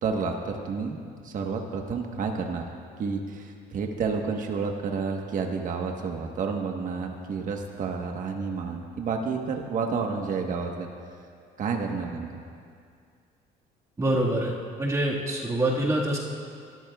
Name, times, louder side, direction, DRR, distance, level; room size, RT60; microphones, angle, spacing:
voice 1, 0.0-2.6 3.0-10.9 11.6-12.3, right 5 dB, 50° right, 2 dB, 1.3 m, -30 dB
voice 2, 14.0-14.5 14.8-16.2, right 1 dB, 20° right, -4 dB, 1.8 m, -25 dB
22.5 x 14.0 x 2.4 m, 2.2 s
cardioid pair, 110°, 17 cm